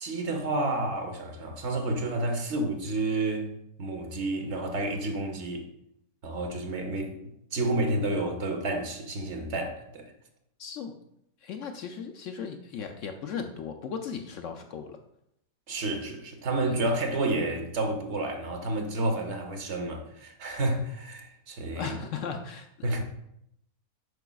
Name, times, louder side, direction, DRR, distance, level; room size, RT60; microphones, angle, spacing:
voice 1, 0.0-3.5 3.8-5.7 6.2-10.1 15.7-21.9 22.8-23.0, right 2 dB, 50° right, 1.1 m, -30 dB
voice 2, 10.6-11.0 11.4-15.0 16.6-16.8 21.8-22.7, left 6 dB, 70° left, 0.8 m, -36 dB
7.9 x 5.9 x 2.3 m
omnidirectional pair, 1.6 m